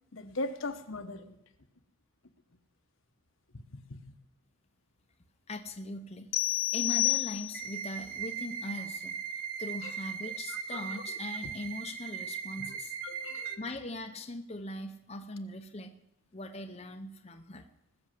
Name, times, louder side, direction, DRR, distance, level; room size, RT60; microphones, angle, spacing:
voice 1, 0.1-1.4 3.5-4.2 9.8-9.9 10.5-11.2 11.4-11.5 12.6-13.6, left 2 dB, 65° left, 1.2 m, -40 dB
voice 2, 5.5-13.0 13.6-15.9 16.3-17.7, left 1 dB, 30° left, 0.8 m, -41 dB
sound 1, 6.3-7.9, left 17 dB, 80° left, 0.7 m, -29 dB
sound 2, 7.5-13.5, right 8 dB, 40° right, 0.8 m, -39 dB
20.0 x 7.0 x 7.7 m
head